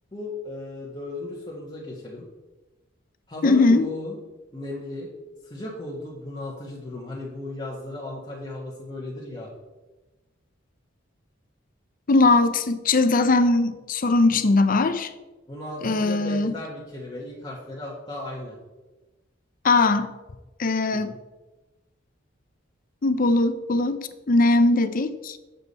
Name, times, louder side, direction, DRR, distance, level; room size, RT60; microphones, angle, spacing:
voice 1, 0.1-2.3 3.3-4.2 4.5-5.1 5.4-9.5 15.5-18.6 20.9-21.1, left 2 dB, 25° left, -5 dB, 1.2 m, -35 dB
voice 2, 3.4-3.9 12.1-15.1 15.8-16.5 19.6-20.1 20.6-21.1 23.0-25.4, left 2 dB, 45° left, 11 dB, 0.6 m, -20 dB
8.1 x 6.9 x 4.1 m, 1.1 s
head